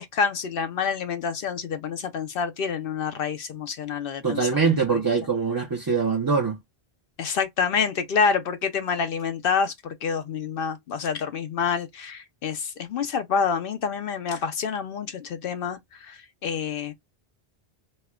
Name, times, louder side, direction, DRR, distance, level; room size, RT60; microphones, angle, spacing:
voice 1, 0.0-5.0 7.2-16.9, left 6 dB, 65° left, 0.7 m, -27 dB
voice 2, 4.2-6.6, right 5 dB, 30° right, 0.5 m, -23 dB
4.2 x 2.1 x 2.2 m
omnidirectional pair, 1.0 m